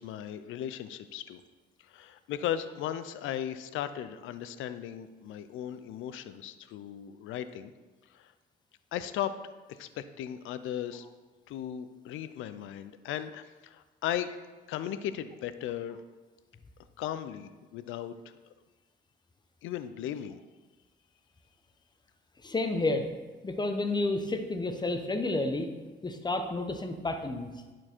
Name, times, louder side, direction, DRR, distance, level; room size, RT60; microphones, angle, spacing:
voice 1, 0.0-1.4 1.9-7.7 8.1-8.3 8.9-9.3 9.7-11.1 11.5-14.3 14.7-16.0 17.0-18.1 19.6-20.4, left 10 dB, 85° left, 12 dB, 0.5 m, -36 dB
voice 2, 22.4-23.1 23.4-25.7 26.0-27.5, left 2 dB, 20° left, 6 dB, 0.9 m, -30 dB
11.0 x 4.5 x 4.4 m, 1.3 s
cardioid pair, 90°, 20 cm